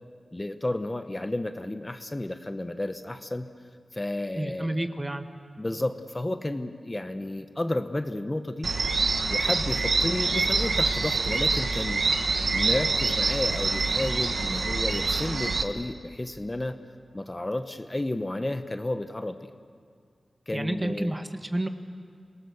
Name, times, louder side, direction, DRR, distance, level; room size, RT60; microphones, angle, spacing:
voice 1, 0.3-3.5 3.9-4.9 5.6-8.7 9.3-12.0 12.5-16.8 17.1-19.4 20.5-21.2, left 1 dB, 20° left, 8 dB, 1.0 m, -32 dB
voice 2, 4.4-5.3 20.5-21.7, right 1 dB, 20° right, 7 dB, 1.4 m, -30 dB
sound 1, 8.6-15.6, right 3 dB, 70° right, 1.4 m, -26 dB
28.5 x 18.0 x 7.1 m, 2.1 s
wide cardioid pair, 70°, 0 cm